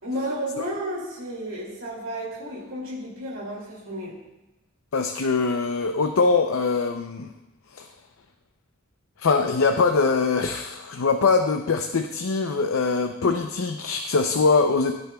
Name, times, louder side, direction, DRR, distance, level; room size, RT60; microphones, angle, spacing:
voice 1, 0.0-4.1, equal, 75° right, -5 dB, 2.6 m, -32 dB
voice 2, 4.9-7.3 7.7-7.9 9.2-14.9, left 4 dB, 80° left, 6 dB, 0.6 m, -22 dB
16.5 x 9.6 x 2.3 m, 1.0 s
head